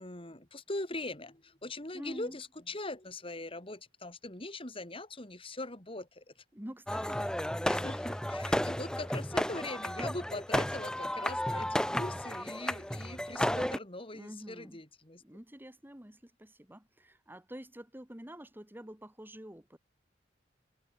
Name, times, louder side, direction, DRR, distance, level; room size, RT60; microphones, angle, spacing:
voice 1, 0.0-6.2 7.7-15.2, left 2 dB, 30° left, 3.9 m, -41 dB
voice 2, 1.9-2.4 6.5-7.4 14.1-14.8 15.2-19.8, equal, 10° right, 2.0 m, -47 dB
sound 1, 6.9-13.8, left 1 dB, 5° left, 0.7 m, -33 dB
head